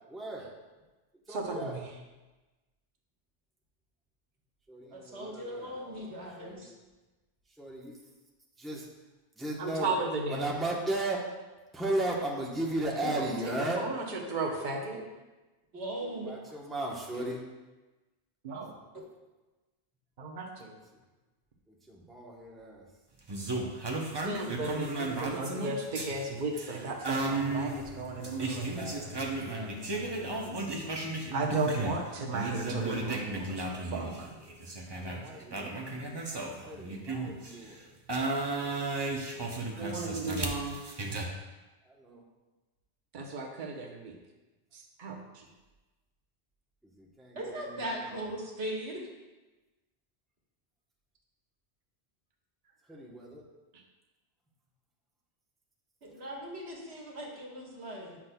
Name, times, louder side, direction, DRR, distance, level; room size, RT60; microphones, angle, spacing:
voice 1, 0.1-0.5 1.3-1.8 4.7-6.7 7.5-7.9 8.6-8.9 9.4-10.0 10.3-11.2 11.7-13.9 16.0-17.4 21.7-22.9 28.3-31.0 34.2-34.5 34.9-37.8 41.8-42.2 46.8-48.2 52.9-53.4, right 1 dB, ahead, -3 dB, 0.9 m, -37 dB
voice 2, 1.3-1.8 9.6-10.4 13.0-13.3 13.8-14.0 14.3-15.0 18.4-18.7 20.2-20.7 24.2-28.8 31.3-34.3 39.8-40.9 43.1-44.1 44.7-45.4, right 3 dB, 50° right, 0 dB, 1.0 m, -35 dB
voice 3, 4.9-6.7 15.7-16.4 17.1-17.2 18.9-19.0 47.4-49.0 56.0-58.2, right 1 dB, 85° right, -2 dB, 1.7 m, -39 dB
sound 1, 23.3-32.0 32.3-37.6 38.1-41.3, right 2 dB, 30° right, 0.7 m, -34 dB
Bowed string instrument, 27.1-32.1, left 7 dB, 90° left, 1.9 m, -50 dB
9.5 x 5.9 x 2.2 m, 1.2 s
omnidirectional pair, 1.0 m